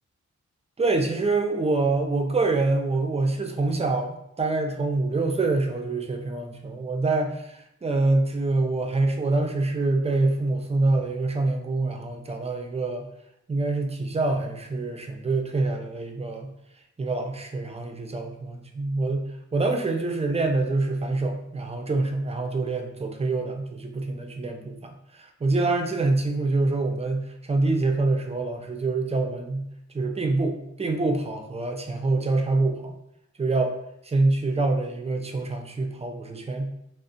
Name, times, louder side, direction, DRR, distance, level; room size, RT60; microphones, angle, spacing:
voice 1, 0.8-13.1 13.5-16.5 17.0-19.2 19.5-29.6 29.9-32.9 33.4-33.7 34.0-36.7, right 2 dB, 20° right, 4 dB, 0.3 m, -26 dB
2.4 x 2.1 x 2.5 m, 0.79 s
wide cardioid pair, 75°, 31 cm